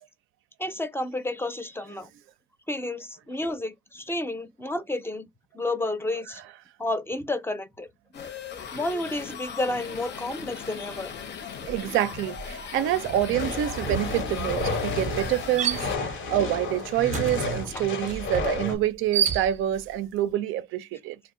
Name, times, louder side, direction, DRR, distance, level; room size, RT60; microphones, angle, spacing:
voice 1, 0.6-2.1 2.7-5.3 5.5-6.4 6.8-7.9 8.7-11.1 17.7-17.8, left 2 dB, 10° left, 0.5 m, -31 dB
sound 1, 8.1-16.0, left 7 dB, 60° left, 0.7 m, -39 dB
sound 2, 10.9-11.2 11.5-19.9, right 8 dB, 35° right, 0.5 m, -33 dB
voice 2, 11.7-21.2, right 12 dB, 90° right, 0.4 m, -27 dB
sound 3, 13.3-18.7, left 4 dB, 80° left, 1.0 m, -31 dB
2.4 x 2.1 x 3.6 m
cardioid pair, 90°, 20 cm